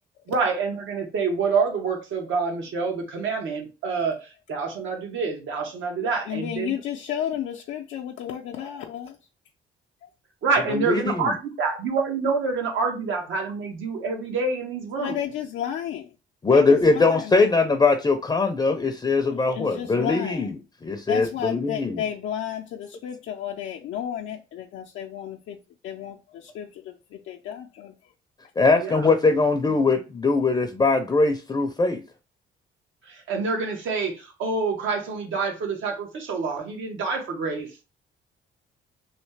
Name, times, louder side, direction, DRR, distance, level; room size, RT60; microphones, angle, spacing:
voice 1, 0.3-6.7 10.4-15.2 28.8-29.1 33.0-37.8, right 4 dB, 80° right, 1.2 m, -27 dB
voice 2, 6.0-9.2 10.0-10.1 11.6-11.7 14.9-16.2 16.5-17.5 19.3-20.5 21.1-28.1, left 10 dB, 80° left, 0.5 m, -33 dB
voice 3, 10.7-11.3 16.4-20.5 20.8-22.0 28.6-32.0, left 3 dB, 20° left, 0.5 m, -21 dB
3.2 x 2.8 x 3.2 m
cardioid pair, 90°, 20 cm